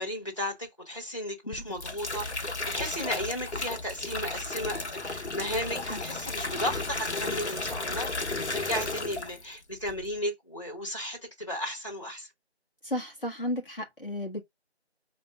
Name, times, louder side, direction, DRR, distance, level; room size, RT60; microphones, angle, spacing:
voice 1, 0.0-12.3, equal, 30° left, 1.5 m, -35 dB
sound 1, 1.5-9.5 9.8-10.2, left 2 dB, 80° left, 0.9 m, -34 dB
voice 2, 12.8-14.4, left 1 dB, 50° left, 1.0 m, -34 dB
5.0 x 2.1 x 3.4 m
figure-of-eight pair, 170°, 33 cm